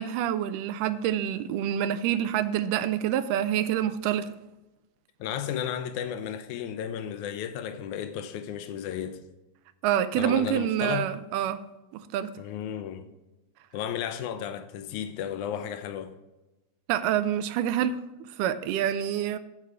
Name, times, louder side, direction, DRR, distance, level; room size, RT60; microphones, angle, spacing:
voice 1, 0.0-4.3 9.8-11.6 12.1-12.3 16.9-18.0 18.4-19.4, right 10 dB, 80° right, 1.9 m, -27 dB
voice 2, 5.2-9.2 10.2-11.1 12.4-13.1 13.7-16.1, left 9 dB, 90° left, 1.7 m, -33 dB
14.5 x 4.9 x 3.4 m
omnidirectional pair, 4.1 m